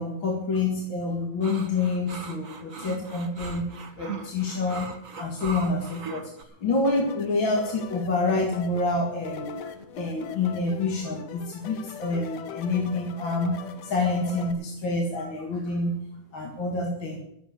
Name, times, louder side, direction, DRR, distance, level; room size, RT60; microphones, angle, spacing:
voice 1, 0.0-3.7 4.0-6.3 6.6-16.0 16.3-17.2, left 3 dB, 45° left, 0 dB, 2.5 m, -27 dB
sound 1, 1.4-6.4, right 5 dB, 35° right, 1.4 m, -39 dB
sound 2, 6.8-14.5, left 7 dB, 65° left, 2.1 m, -41 dB
13.5 x 8.1 x 8.4 m, 0.78 s
omnidirectional pair, 3.3 m